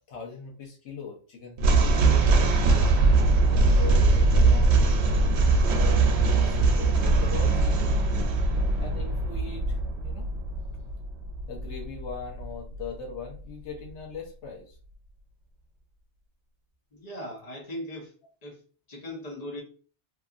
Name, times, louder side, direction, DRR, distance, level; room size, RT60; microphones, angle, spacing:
voice 1, 0.1-2.1 3.7-4.8 5.1-7.9 8.8-10.3 11.5-14.8, left 5 dB, 80° left, 1.0 m, -40 dB
sound 1, 1.6-12.9, right 3 dB, 75° right, 0.8 m, -22 dB
voice 2, 16.9-18.1 18.4-18.6 18.9-19.6, left 1 dB, 35° left, 1.1 m, -38 dB
2.8 x 2.4 x 2.4 m
omnidirectional pair, 1.1 m